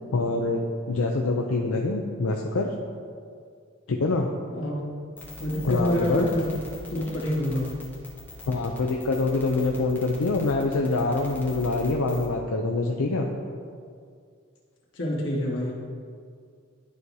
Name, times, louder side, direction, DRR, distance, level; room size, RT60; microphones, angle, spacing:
voice 1, 0.1-2.7 3.9-4.3 5.6-6.3 8.5-13.3, left 3 dB, 80° left, 1 dB, 0.5 m, -25 dB
sound 1, 5.2-12.3, left 2 dB, 10° left, 0.9 m, -42 dB
voice 2, 5.4-6.5 6.9-7.7 14.9-15.7, left 1 dB, 60° left, -4 dB, 1.6 m, -27 dB
11.5 x 4.7 x 2.8 m, 2.1 s
head